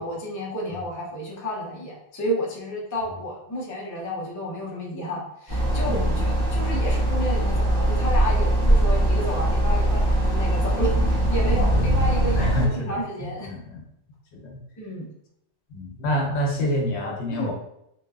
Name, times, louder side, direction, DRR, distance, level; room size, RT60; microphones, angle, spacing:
voice 1, 0.0-13.5 14.8-15.1 16.6-16.7 17.0-17.5, equal, 25° left, -3 dB, 0.4 m, -31 dB
sound 1, 5.5-12.7, right 1 dB, 40° right, 1.0 m, -21 dB
voice 2, 5.8-6.7 12.4-13.8 14.3-14.6 15.7-17.5, equal, 70° left, 0 dB, 0.9 m, -28 dB
2.7 x 2.3 x 2.3 m, 0.78 s
omnidirectional pair, 1.2 m